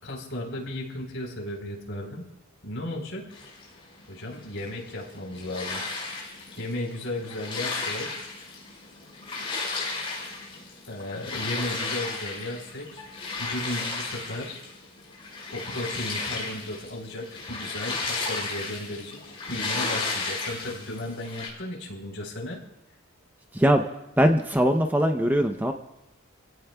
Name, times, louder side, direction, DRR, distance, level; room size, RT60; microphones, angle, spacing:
voice 1, 0.0-2.3 2.6-3.4 4.1-5.8 6.6-8.2 10.9-13.0 13.4-14.6 15.5-22.6, left 1 dB, 60° left, 0 dB, 4.0 m, -35 dB
sound 1, 3.3-21.5, left 3 dB, 25° left, 5.0 m, -34 dB
voice 2, 23.5-23.8 24.2-25.7, equal, 10° right, 5 dB, 0.6 m, -21 dB
29.5 x 17.0 x 2.3 m, 0.86 s
head